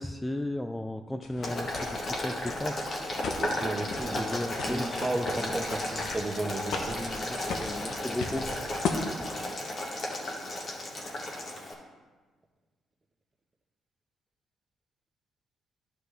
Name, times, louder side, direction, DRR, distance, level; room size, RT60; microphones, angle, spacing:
voice 1, 0.0-2.8 4.2-5.5 7.0-8.5, left 1 dB, 10° left, 7 dB, 0.3 m, -35 dB
sound 1, 1.2-8.9, left 5 dB, 75° left, 0.8 m, -39 dB
Boiling, 1.4-11.7, left 1 dB, 45° left, 1.6 m, -34 dB
voice 2, 3.4-4.3 4.6-7.1, right 2 dB, 20° right, 2 dB, 1.1 m, -34 dB
11.5 x 4.8 x 3.4 m, 1.3 s
cardioid pair, 90°, 0 cm